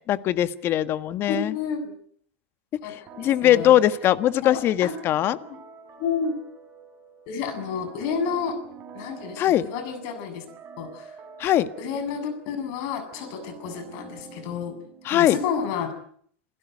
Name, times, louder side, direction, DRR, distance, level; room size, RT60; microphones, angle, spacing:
voice 1, 0.1-1.5 3.2-5.4 9.4-9.7 11.4-11.7 15.0-15.4, left 12 dB, 35° left, 13 dB, 1.5 m, -21 dB
voice 2, 1.2-1.9 2.8-2.9 3.2-3.8 4.4-4.9 6.0-6.4 7.3-8.5 8.9-10.4 10.8-11.1 11.8-14.8 15.1-15.9, left 6 dB, 50° left, 9 dB, 7.3 m, -30 dB
sound 1, 3.1-15.5, right 5 dB, 30° right, 5.9 m, -46 dB
29.0 x 16.5 x 9.4 m, 0.62 s
supercardioid pair, 130°, 7 cm